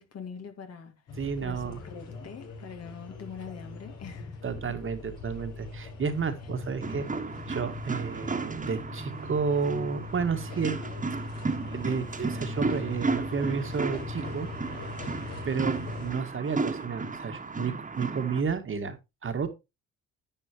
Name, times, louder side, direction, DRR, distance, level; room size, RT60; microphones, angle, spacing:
voice 1, 0.0-1.0 1.4-4.8, left 6 dB, 55° left, 2.2 m, -43 dB
sound 1, 1.1-16.1, left 3 dB, 75° left, 5.2 m, -41 dB
voice 2, 1.2-1.8 4.4-7.1 7.5-10.8 11.7-14.9 15.4-19.5, right 5 dB, 45° right, 1.8 m, -31 dB
sound 2, 6.8-18.4, right 4 dB, 25° right, 1.7 m, -34 dB
10.5 x 8.4 x 3.0 m
cardioid pair, 90°, 30 cm